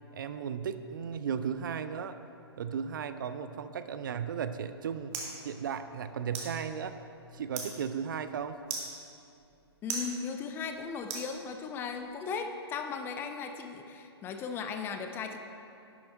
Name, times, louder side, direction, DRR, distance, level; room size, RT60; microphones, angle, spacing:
voice 1, 0.1-2.2 2.6-5.2 5.4-7.0 7.3-8.6, right 7 dB, 50° right, 11 dB, 0.4 m, -35 dB
sound 1, 4.3-11.9, right 4 dB, 30° right, 1.6 m, -43 dB
voice 2, 9.8-15.4, left 5 dB, 15° left, 6 dB, 0.5 m, -37 dB
11.0 x 7.6 x 4.5 m, 2.7 s
figure-of-eight pair, 120°, 14 cm